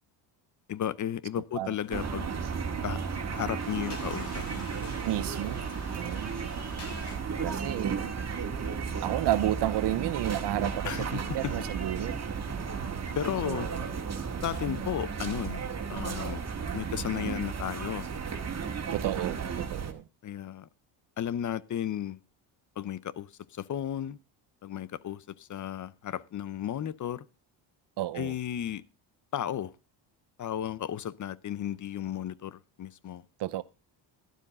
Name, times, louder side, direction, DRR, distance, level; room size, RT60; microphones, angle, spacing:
voice 1, 0.7-2.3 2.8-3.0 3.3-4.7 10.8-11.5 13.2-13.7 14.4-16.4 16.7-18.1 20.2-20.7 21.2-22.2 22.8-24.2 24.6-27.2 28.1-28.8 29.3-29.7 30.4-33.2, left 10 dB, 40° left, 0.7 m, -34 dB
sound 1, 1.7-1.9 2.5-2.9 3.2-7.1, left 4 dB, 90° left, 6.4 m, -47 dB
sound 2, 1.9-19.9, right 6 dB, 35° right, 2.2 m, -34 dB
voice 2, 5.0-5.7 5.9-6.4 7.4-8.1 9.0-12.2 13.4-13.8 18.9-20.0 28.0-28.3 33.4-33.6, right 14 dB, 60° right, 0.8 m, -32 dB
12.0 x 12.0 x 3.6 m
cardioid pair, 110°, 48 cm